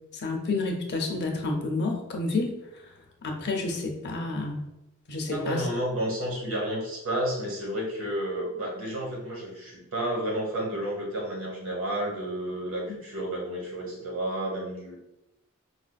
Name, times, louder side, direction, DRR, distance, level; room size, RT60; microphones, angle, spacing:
voice 1, 0.1-2.5 3.2-4.7 5.1-5.7, left 3 dB, 50° left, 2 dB, 0.6 m, -29 dB
voice 2, 5.3-15.0, right 1 dB, 65° right, -2 dB, 1.2 m, -31 dB
4.8 x 2.5 x 2.3 m, 0.91 s
head